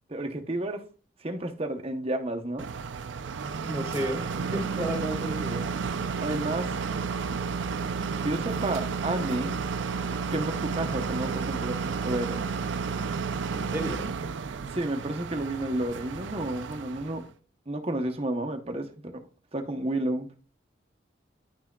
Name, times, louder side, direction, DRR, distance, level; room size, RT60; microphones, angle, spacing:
voice 1, 0.1-0.8 1.2-2.7 6.2-6.7 8.2-9.6 10.3-12.4 14.6-17.3 17.7-19.2 19.5-20.3, right 1 dB, 30° right, 0.8 m, -31 dB
sound 1, 2.6-17.3, right 5 dB, 75° right, 0.5 m, -32 dB
voice 2, 3.6-5.7 13.5-14.1, equal, 15° right, 1.7 m, -33 dB
10.5 x 6.0 x 2.3 m
head